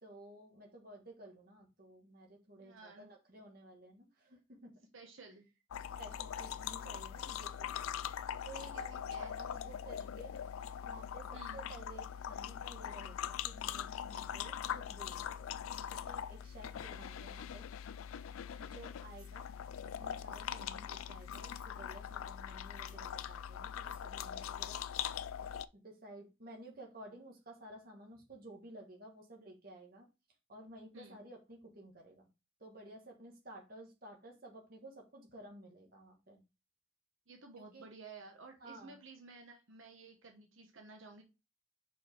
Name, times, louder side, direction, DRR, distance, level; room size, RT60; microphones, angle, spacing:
voice 1, 0.0-4.7 6.0-7.7 8.4-10.4 10.8-15.5 15.9-17.7 18.6-19.5 19.8-25.5 25.7-30.1 30.5-32.3 32.6-36.4 37.6-37.9 38.6-39.0, right 1 dB, 45° right, 1.7 m, -54 dB
voice 2, 2.6-3.1 4.9-5.5 8.5-9.4 11.3-11.6 17.1-17.3 18.5-18.8 30.9-31.2 37.3-41.2, right 3 dB, 75° right, 1.2 m, -54 dB
sound 1, 5.7-25.7, left 9 dB, 85° left, 0.4 m, -42 dB
sound 2, 18.2-18.3 19.0-19.5 20.0-20.6 21.0-22.2 22.6-24.7, right 2 dB, 25° right, 3.6 m, -66 dB
5.3 x 4.6 x 4.5 m
head